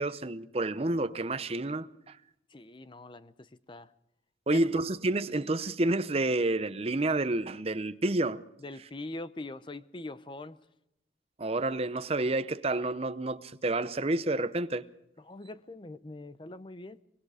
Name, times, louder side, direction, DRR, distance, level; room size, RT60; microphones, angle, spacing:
voice 1, 0.0-2.2 4.5-8.4 11.4-14.9, right 2 dB, 35° right, 0.7 m, -29 dB
voice 2, 2.5-3.9 4.5-4.8 8.6-10.6 15.2-17.0, left 2 dB, 25° left, 0.7 m, -42 dB
24.5 x 22.5 x 5.0 m
head